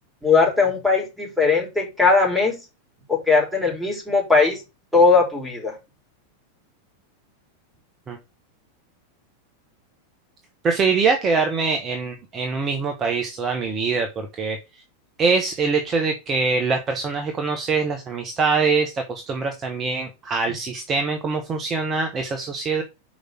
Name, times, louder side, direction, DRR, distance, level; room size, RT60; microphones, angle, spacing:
voice 1, 0.2-2.6 3.1-4.6 4.9-5.7, left 4 dB, ahead, 1 dB, 3.8 m, -19 dB
voice 2, 10.6-14.6 15.2-22.8, right 4 dB, 25° right, 5 dB, 1.2 m, -23 dB
6.3 x 5.0 x 6.1 m, 0.26 s
figure-of-eight pair, 90°, 0 cm